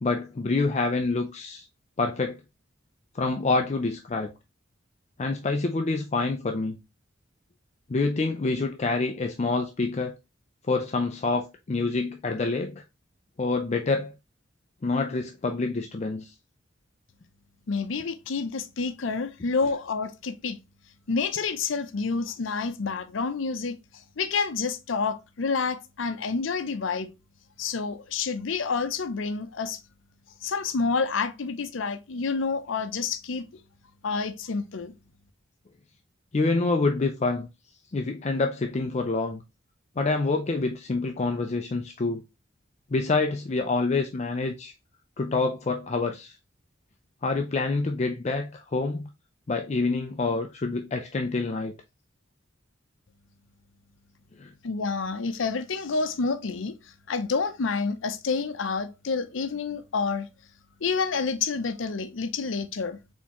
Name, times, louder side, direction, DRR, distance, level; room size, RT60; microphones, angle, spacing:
voice 1, 0.0-1.6 2.0-2.4 3.1-4.3 5.2-6.8 7.9-10.1 10.7-12.8 13.4-14.1 14.8-16.3 36.3-37.5 37.9-39.4 40.0-42.2 42.9-44.7 45.2-46.3 47.2-49.1 49.5-51.7 54.4-54.5, left 3 dB, 35° left, 0.4 m, -27 dB
voice 2, 17.7-20.6 21.1-23.8 24.2-27.1 27.6-29.8 30.4-33.5 34.0-34.9 54.6-60.3 60.8-63.0, left 4 dB, 85° left, 0.6 m, -28 dB
4.4 x 3.5 x 2.9 m
head